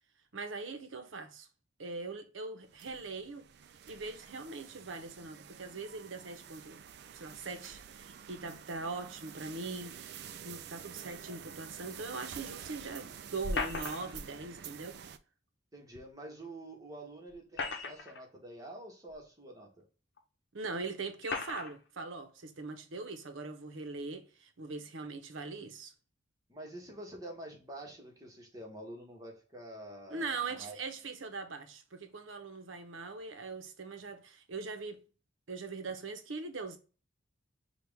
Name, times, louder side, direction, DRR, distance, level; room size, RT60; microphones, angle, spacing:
voice 1, 0.3-1.5 1.8-3.5 3.9-6.8 7.1-15.0 20.5-25.9 30.1-35.0 35.5-36.8, right 3 dB, 90° right, 0.8 m, -41 dB
sound 1, 2.6-15.2, right 8 dB, 60° right, 0.4 m, -49 dB
sound 2, 13.4-14.3 16.0-16.1 17.3-18.2 19.1-19.2 20.2-20.3 21.2-21.7, left 3 dB, 60° left, 0.9 m, -36 dB
voice 2, 15.7-19.8 26.5-30.8, right 1 dB, 20° right, 1.2 m, -47 dB
5.9 x 2.4 x 3.4 m
head